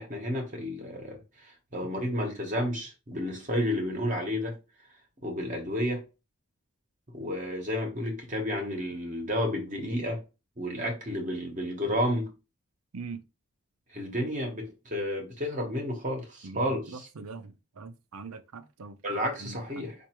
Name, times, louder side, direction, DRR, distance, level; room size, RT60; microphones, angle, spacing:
voice 1, 0.0-4.6 5.2-6.0 7.1-10.2 10.6-12.3 13.9-17.1 19.0-19.9, equal, 35° right, 1.0 m, -31 dB
voice 2, 16.4-19.0 19.4-19.9, right 4 dB, 80° right, 0.6 m, -42 dB
4.7 x 2.6 x 3.0 m
head